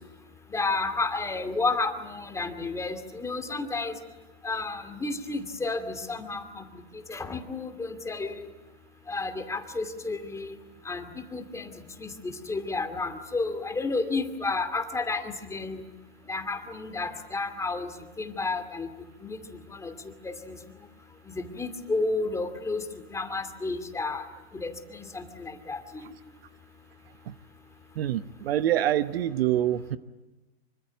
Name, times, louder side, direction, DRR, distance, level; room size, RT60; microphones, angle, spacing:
voice 1, 0.5-3.9 4.4-6.6 7.1-8.3 9.1-10.5 10.9-11.0 11.3-11.7 12.0-12.1 12.5-15.8 16.3-17.9 18.2-18.9 19.2-19.4 19.8-19.9 20.2-20.6 21.3-22.8 23.1-24.2 24.5-25.8, left 3 dB, 10° left, 7 dB, 2.5 m, -31 dB
voice 2, 28.0-30.0, right 12 dB, 60° right, 13 dB, 1.1 m, -26 dB
25.5 x 24.5 x 9.2 m, 1.1 s
hypercardioid pair, 125°, 33 cm